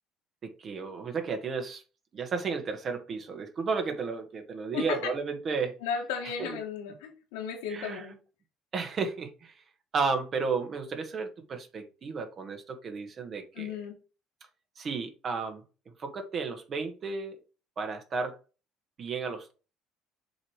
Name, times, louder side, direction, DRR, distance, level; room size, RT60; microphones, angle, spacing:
voice 1, 0.4-1.8 2.1-5.7 6.4-6.6 7.7-8.0 8.7-9.5 9.9-13.7 14.8-15.6 16.0-17.4 17.8-18.4 19.0-19.5, right 4 dB, 45° right, 6 dB, 1.6 m, -33 dB
voice 2, 4.7-5.1 5.8-8.2 13.5-13.9, left 7 dB, 85° left, 1 dB, 1.8 m, -35 dB
7.2 x 3.2 x 4.8 m, 0.34 s
supercardioid pair, 75°, 0 cm